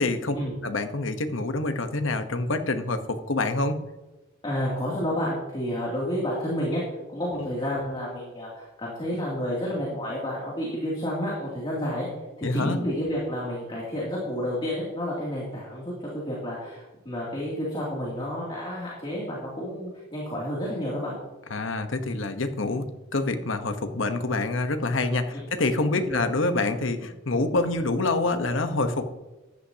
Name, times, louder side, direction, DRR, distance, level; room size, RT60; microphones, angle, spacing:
voice 1, 0.0-0.4 0.6-3.8 12.4-12.8 21.5-22.8 23.1-29.1, left 2 dB, 70° left, 8 dB, 1.1 m, -26 dB
voice 2, 4.4-6.8 7.1-12.1 12.4-21.2 25.9-26.3, equal, 25° left, -5 dB, 2.6 m, -30 dB
14.5 x 11.5 x 2.8 m, 1.1 s
head